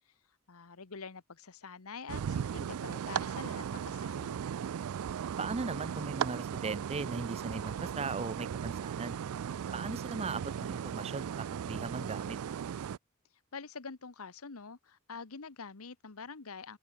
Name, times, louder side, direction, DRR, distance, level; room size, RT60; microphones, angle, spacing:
voice 1, 0.5-4.4 13.5-16.8, left 5 dB, 75° left, 1.1 m, -46 dB
sound 1, 2.1-13.0, right 8 dB, 75° right, 0.4 m, -37 dB
voice 2, 5.4-9.2 9.7-12.4, right 4 dB, 30° right, 0.6 m, -38 dB
open air
head